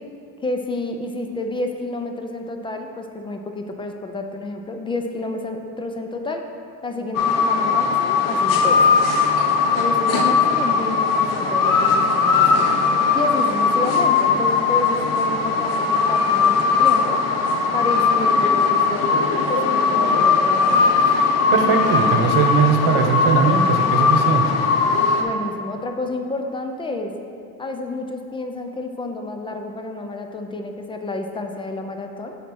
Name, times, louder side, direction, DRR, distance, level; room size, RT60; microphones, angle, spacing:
voice 1, 0.4-6.5 6.8-8.9 9.7-12.8 13.1-17.2 17.7-20.9 25.2-27.1 27.6-32.4, left 2 dB, 15° left, 4 dB, 0.4 m, -30 dB
sound 1, 7.1-25.2, left 5 dB, 75° left, 0.8 m, -19 dB
voice 2, 21.5-24.5, right 6 dB, 85° right, 5 dB, 0.9 m, -19 dB
7.0 x 4.3 x 6.1 m, 2.5 s
cardioid pair, 145°, 33 cm